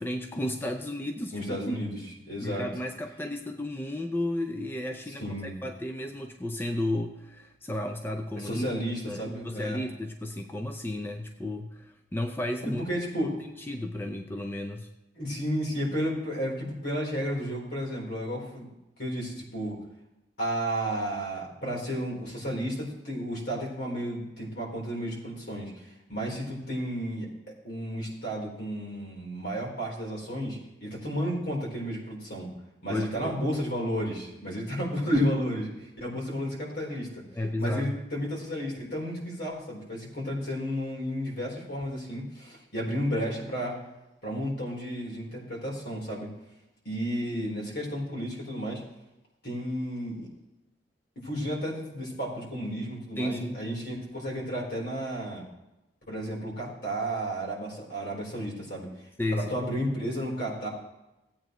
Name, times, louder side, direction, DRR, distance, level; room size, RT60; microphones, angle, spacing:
voice 1, 0.0-1.8 2.4-8.7 9.1-12.8 13.2-13.3 13.7-14.9 32.9-33.4 37.3-38.0 53.2-53.6 59.2-59.6, left 1 dB, 15° left, 4 dB, 0.5 m, -33 dB
voice 2, 1.3-2.0 2.3-2.7 5.2-5.5 8.4-9.8 12.6-13.3 15.2-18.7 19.0-19.8 20.4-25.7 26.1-27.3 27.6-32.5 32.8-37.2 37.6-43.8 44.2-46.3 46.9-48.8 49.4-50.3 51.2-55.4 56.1-58.9 59.3-60.7, equal, 65° left, -2 dB, 3.8 m, -32 dB
16.5 x 8.7 x 3.1 m, 0.97 s
head